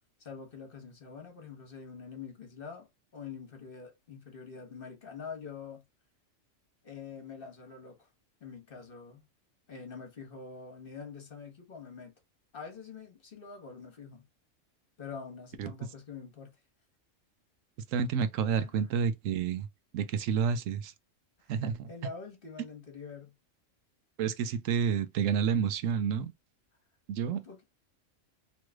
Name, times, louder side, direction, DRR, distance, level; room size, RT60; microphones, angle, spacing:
voice 1, 0.2-2.9 3.1-5.8 6.8-8.1 8.4-9.2 9.7-12.1 12.5-14.3 15.0-16.5 18.6-19.0 21.5-23.3 27.3-27.6, left 5 dB, 50° left, 1.3 m, -45 dB
voice 2, 17.9-19.7 19.9-20.9 21.5-21.9 24.2-26.3 27.1-27.4, right 7 dB, 85° right, 1.0 m, -29 dB
3.1 x 3.1 x 2.3 m
omnidirectional pair, 1.3 m